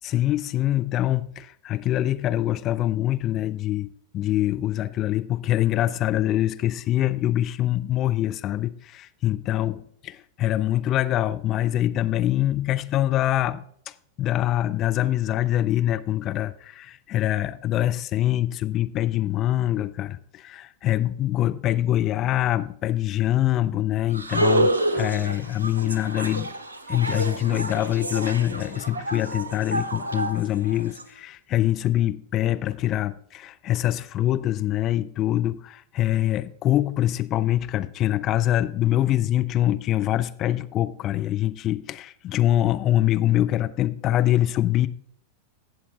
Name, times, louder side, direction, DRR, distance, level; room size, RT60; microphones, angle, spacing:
voice 1, 0.0-3.9 4.1-9.8 10.4-26.5 26.9-44.9, left 13 dB, 35° left, 0.5 m, -24 dB
sound 1, 24.1-31.0, right 1 dB, 75° right, 0.7 m, -28 dB
16.5 x 7.2 x 2.5 m
figure-of-eight pair, 90°, 0 cm